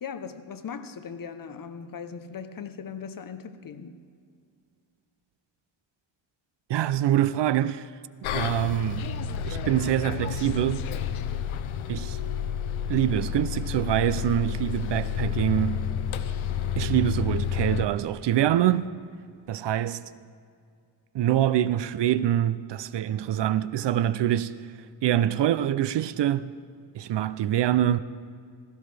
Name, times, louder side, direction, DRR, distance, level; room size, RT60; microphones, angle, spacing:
voice 1, 0.0-4.0, left 6 dB, 45° left, 0.8 m, -39 dB
voice 2, 6.7-7.9 8.2-9.1 9.5-10.9 11.9-12.2 12.9-15.9 16.8-18.9 19.5-20.0 21.1-24.7 25.0-26.5 26.9-28.0, right 12 dB, 60° right, 0.5 m, -25 dB
Bus, 8.2-17.8, left 8 dB, 90° left, 0.8 m, -30 dB
16.0 x 15.0 x 3.3 m
cardioid pair, 115°, 47 cm